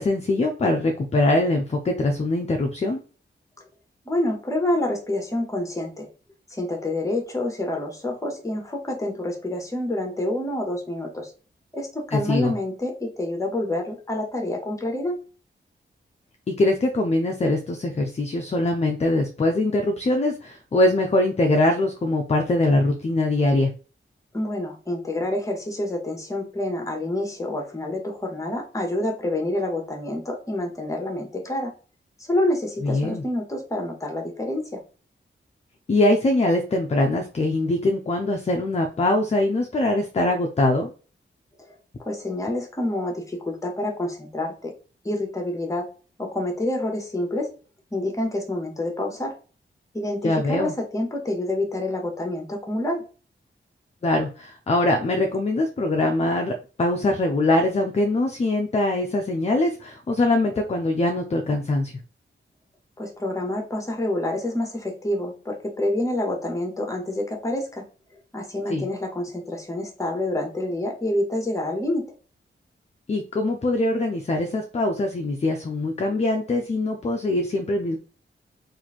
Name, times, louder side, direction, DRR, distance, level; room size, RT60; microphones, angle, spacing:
voice 1, 0.0-3.0 12.1-12.5 16.5-23.7 32.8-33.2 35.9-40.9 50.2-50.7 54.0-61.9 68.7-68.9 73.1-78.0, left 2 dB, 30° left, 3 dB, 0.4 m, -22 dB
voice 2, 4.1-6.1 6.5-11.3 11.7-15.2 24.3-31.7 32.2-34.8 41.6-41.7 42.0-44.7 45.0-45.9 46.2-47.5 47.9-49.3 49.9-53.0 63.0-67.8 68.3-72.0, left 1 dB, 15° left, 2 dB, 0.9 m, -27 dB
3.0 x 2.6 x 4.0 m, 0.37 s
wide cardioid pair, 145°, 21 cm